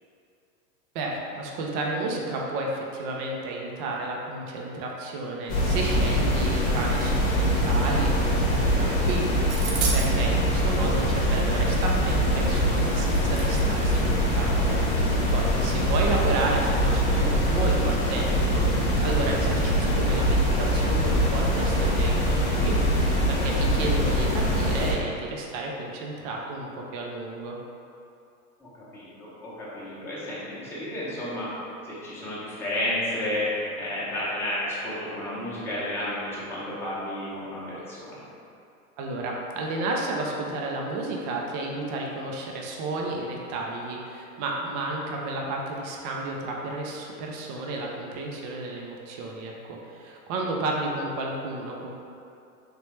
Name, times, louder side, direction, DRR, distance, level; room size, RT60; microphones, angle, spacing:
voice 1, 0.9-14.8 15.3-22.8 23.3-27.6 39.0-51.9, right 2 dB, 30° right, -1 dB, 0.3 m, -32 dB
sound 1, 5.5-24.9, equal, 40° left, 0.9 m, -23 dB
sound 2, 9.5-10.1 12.1-12.2 12.4-14.1, right 4 dB, 60° right, 0.8 m, -34 dB
voice 2, 28.6-31.5 31.8-38.2, left 1 dB, 5° left, -9 dB, 0.7 m, -32 dB
3.2 x 2.9 x 3.1 m, 2.6 s
hypercardioid pair, 110°, 43 cm